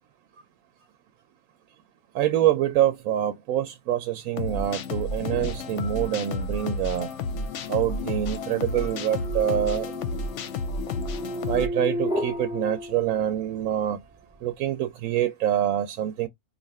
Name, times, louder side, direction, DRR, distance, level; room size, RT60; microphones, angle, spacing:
voice 1, 2.1-7.1 7.7-9.9 11.5-14.0 14.4-16.3, right 11 dB, 75° right, 1.0 m, -25 dB
sound 1, 4.4-11.7, left 3 dB, 65° left, 0.8 m, -31 dB
sound 2, 8.0-13.7, equal, 5° right, 0.5 m, -34 dB
2.8 x 2.4 x 4.1 m
omnidirectional pair, 1.5 m